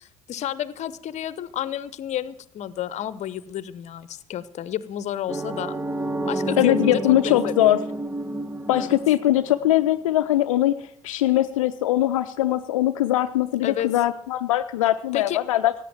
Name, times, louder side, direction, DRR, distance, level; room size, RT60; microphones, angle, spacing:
voice 1, 0.0-5.8 6.2-7.7 8.7-9.0 13.6-13.9 15.1-15.4, left 11 dB, 40° left, 17 dB, 0.8 m, -31 dB
sound 1, 5.3-10.1, right 2 dB, 10° right, 0.7 m, -30 dB
voice 2, 6.6-7.8 8.7-15.9, left 14 dB, 70° left, 9 dB, 0.5 m, -21 dB
16.5 x 8.5 x 7.3 m, 0.68 s
figure-of-eight pair, 60°, 17 cm